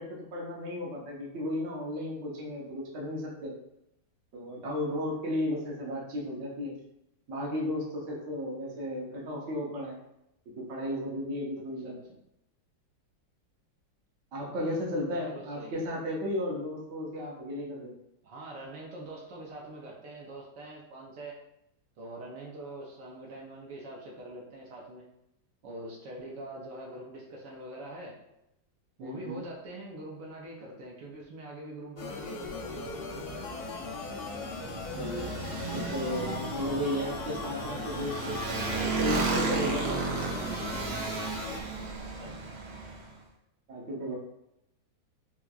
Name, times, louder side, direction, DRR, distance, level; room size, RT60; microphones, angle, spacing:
voice 1, 0.0-3.5 4.3-6.7 7.3-10.0 10.5-12.0 14.3-17.9 29.0-29.4 34.9-40.2 43.7-44.2, left 1 dB, 55° right, -3 dB, 0.9 m, -34 dB
voice 2, 11.5-12.2 14.5-14.9 15.2-15.8 18.2-21.4 22.0-25.1 25.6-28.1 29.0-33.7 42.0-42.9, right 1 dB, 70° right, -2 dB, 1.2 m, -44 dB
sound 1, 32.0-41.6, left 4 dB, 80° left, 0.8 m, -39 dB
Motorcycle, 32.4-43.1, right 4 dB, 90° right, 1.5 m, -34 dB
4.4 x 2.4 x 2.3 m, 0.85 s
omnidirectional pair, 2.2 m